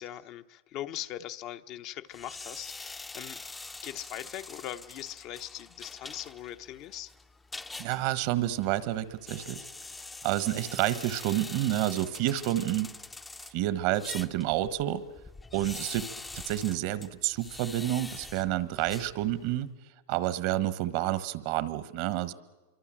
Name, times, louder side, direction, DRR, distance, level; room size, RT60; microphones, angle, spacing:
voice 1, 0.0-3.4 3.8-7.1, left 12 dB, 45° left, 0.9 m, -40 dB
sound 1, 2.1-19.6, left 3 dB, 10° left, 0.7 m, -45 dB
voice 2, 7.8-9.6 10.2-12.9 13.5-15.0 15.5-16.1 16.3-19.7 20.1-22.3, right 14 dB, 55° right, 1.2 m, -29 dB
25.5 x 24.5 x 7.6 m
supercardioid pair, 130°, 0 cm